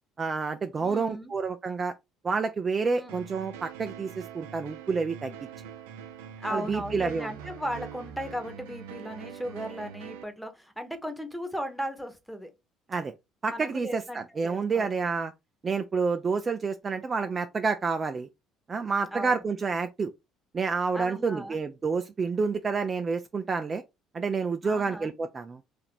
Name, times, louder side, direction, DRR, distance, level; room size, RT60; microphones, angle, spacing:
voice 1, 0.2-1.9 2.2-5.3 6.5-7.3 12.9-13.1 13.4-15.3 15.6-18.3 18.7-20.1 20.5-23.8 24.1-25.6, right 4 dB, 35° right, 0.4 m, -29 dB
voice 2, 0.8-1.3 2.9-3.3 6.4-12.5 13.5-15.1 19.1-19.3 20.9-21.6 24.6-25.1, equal, ahead, 1.0 m, -37 dB
sound 1, 3.1-10.2, right 8 dB, 85° right, 0.5 m, -43 dB
2.9 x 2.6 x 4.2 m
hypercardioid pair, 70°, 0 cm